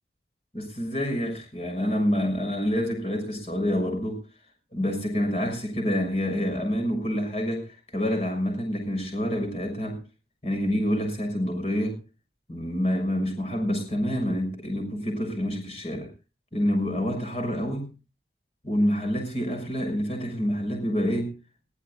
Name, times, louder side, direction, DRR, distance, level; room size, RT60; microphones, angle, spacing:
voice 1, 0.5-4.2 4.7-10.0 10.4-12.0 12.5-16.1 16.5-17.9 18.6-21.3, equal, 35° left, 3 dB, 6.5 m, -27 dB
21.0 x 18.0 x 2.4 m, 0.32 s
head